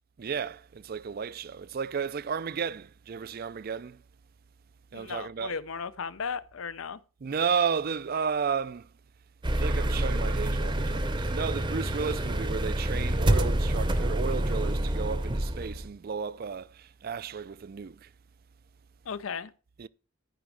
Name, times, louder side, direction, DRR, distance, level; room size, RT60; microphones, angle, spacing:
voice 1, 0.2-4.0 4.9-5.5 7.2-8.9 9.5-18.1 19.8-19.9, right 6 dB, 45° right, 0.4 m, -33 dB
voice 2, 4.9-7.0 19.1-19.5, left 6 dB, 75° left, 0.6 m, -35 dB
sound 1, 9.4-15.9, right 1 dB, 25° right, 0.7 m, -27 dB
13.5 x 5.1 x 4.8 m
head